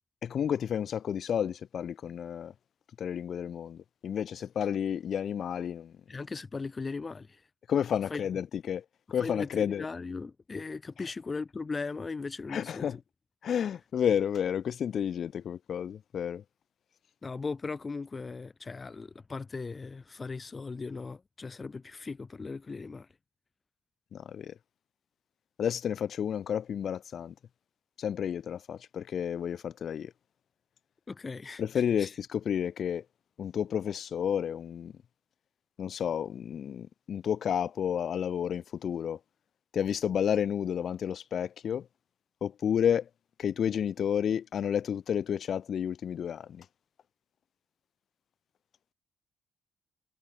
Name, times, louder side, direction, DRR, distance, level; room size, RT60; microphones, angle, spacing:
voice 1, 0.2-2.5 3.0-5.9 7.7-8.8 9.1-9.9 12.5-13.0 13.4-16.4 24.1-24.5 25.6-27.3 28.0-30.1 31.6-33.0 33.4-34.9 35.8-39.2 39.7-41.9 42.4-43.1 43.4-46.7, left 8 dB, 60° left, 6.8 m, -31 dB
voice 2, 6.1-7.4 8.1-8.2 9.2-12.9 17.2-23.1 31.1-31.6 32.0-32.1, left 4 dB, 30° left, 6.2 m, -38 dB
cardioid pair, 90°, 0 cm